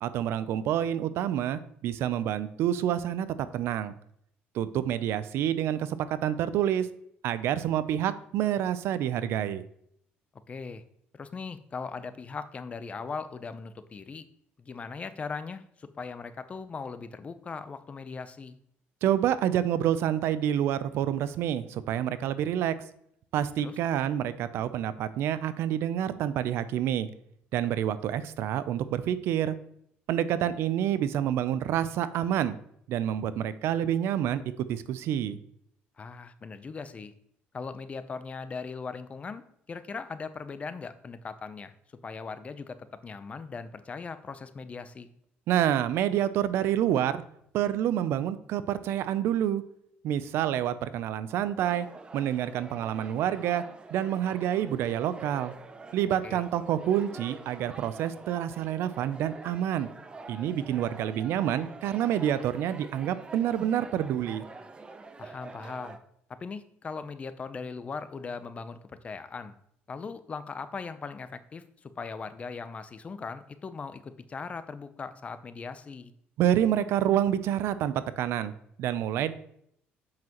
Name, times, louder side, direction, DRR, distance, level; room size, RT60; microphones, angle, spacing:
voice 1, 0.0-3.9 4.5-6.9 7.2-9.6 19.0-22.7 23.3-27.1 27.5-29.6 30.1-32.6 32.9-35.4 45.5-47.2 47.5-49.6 50.0-51.9 52.1-53.6 53.9-55.5 55.9-59.9 60.3-64.4 76.4-78.5 78.8-79.3, right 10 dB, 70° right, 14 dB, 0.5 m, -28 dB
voice 2, 10.5-10.8 11.1-14.2 14.6-18.6 23.6-23.8 36.0-37.1 37.5-41.7 42.0-45.1 56.2-56.4 65.2-66.0 66.3-69.5 69.9-76.1, left 5 dB, 30° left, 12 dB, 0.6 m, -39 dB
sound 1, 51.6-66.0, right 3 dB, 20° right, 0.6 m, -46 dB
7.6 x 5.7 x 3.0 m, 0.70 s
cardioid pair, 105°, 4 cm